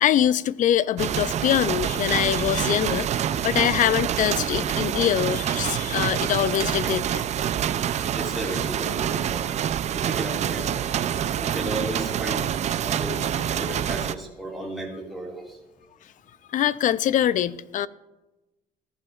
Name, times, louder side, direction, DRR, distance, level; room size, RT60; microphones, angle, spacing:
voice 1, 0.0-7.2 16.5-17.9, left 11 dB, 50° left, 0.4 m, -23 dB
sound 1, 1.0-14.2, right 9 dB, 45° right, 0.4 m, -26 dB
voice 2, 8.1-9.6 9.9-10.7 11.4-12.5 12.8-13.2 13.4-15.6, right 1 dB, ahead, 1.9 m, -34 dB
14.0 x 11.0 x 2.4 m
cardioid pair, 110°, 17 cm